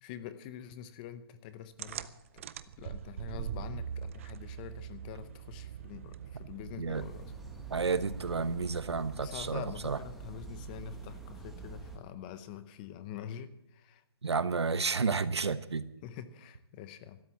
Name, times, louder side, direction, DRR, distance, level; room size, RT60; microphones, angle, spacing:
voice 1, 0.0-2.4 2.8-7.3 9.1-14.0 16.0-17.2, left 10 dB, 20° left, 13 dB, 0.7 m, -45 dB
sound 1, 1.8-9.0, right 9 dB, 30° right, 0.5 m, -43 dB
sound 2, 6.9-12.0, right 5 dB, ahead, 1.2 m, -46 dB
voice 2, 7.7-10.0 14.2-15.8, right 4 dB, 90° right, 14 dB, 1.1 m, -31 dB
13.5 x 12.5 x 7.4 m, 0.84 s
hypercardioid pair, 160°, 14 cm